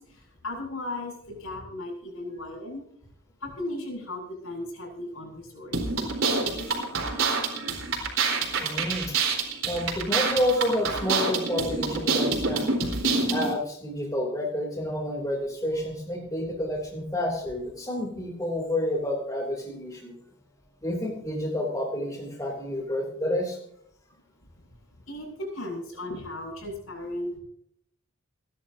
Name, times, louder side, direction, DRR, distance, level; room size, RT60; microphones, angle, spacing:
voice 1, 0.0-2.8 3.4-5.8 6.2-6.9 25.1-27.4, left 1 dB, 90° left, 0 dB, 7.2 m, -36 dB
sound 1, 5.7-13.5, right 4 dB, 70° right, 4.2 m, -27 dB
voice 2, 8.6-9.1 9.6-12.7 13.3-20.1 20.8-23.6, left 1 dB, 15° left, -1 dB, 3.2 m, -29 dB
28.0 x 11.5 x 2.8 m, 0.68 s
head